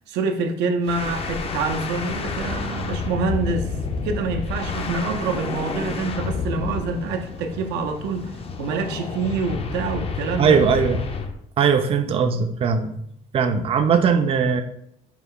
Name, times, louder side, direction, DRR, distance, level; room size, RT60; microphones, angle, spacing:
voice 1, 0.1-3.7 4.0-8.3 8.6-10.7, right 4 dB, 90° right, 5 dB, 0.5 m, -26 dB
sound 1, 0.8-11.4, left 4 dB, 35° left, 0.4 m, -30 dB
voice 2, 10.4-11.0 11.6-12.9 13.3-14.6, right 6 dB, 35° right, 6 dB, 0.4 m, -19 dB
4.6 x 2.1 x 3.6 m, 0.73 s
cardioid pair, 110°, 17 cm